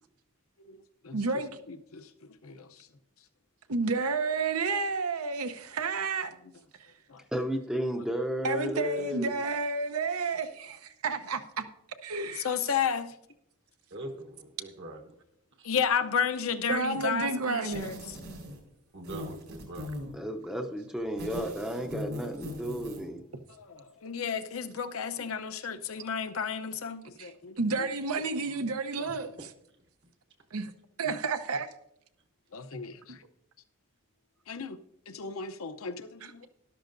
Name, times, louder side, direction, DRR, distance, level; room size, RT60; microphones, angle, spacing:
voice 1, 0.6-2.9 7.1-7.2 9.0-9.1 12.3-13.2 15.6-18.2 23.5-27.9 28.6-29.4 31.0-31.2 32.5-33.2 34.5-34.8 35.1-36.5, left 6 dB, 70° left, 0.7 m, -34 dB
voice 2, 1.1-1.5 3.7-6.3 8.4-11.6 12.0-12.5 16.7-18.0 27.2-27.3 27.6-29.3 30.5-30.7 31.0-31.7, right 4 dB, 90° right, 0.8 m, -30 dB
voice 3, 7.3-9.4 20.1-23.2, equal, 5° right, 0.5 m, -33 dB
voice 4, 13.9-15.0 15.6-15.7 18.9-19.9 28.2-28.3, right 1 dB, 55° right, 1.1 m, -42 dB
sound 1, 17.7-18.7 19.0-20.2 21.0-23.1, left 1 dB, 75° right, 3.7 m, -40 dB
13.0 x 11.5 x 2.6 m
head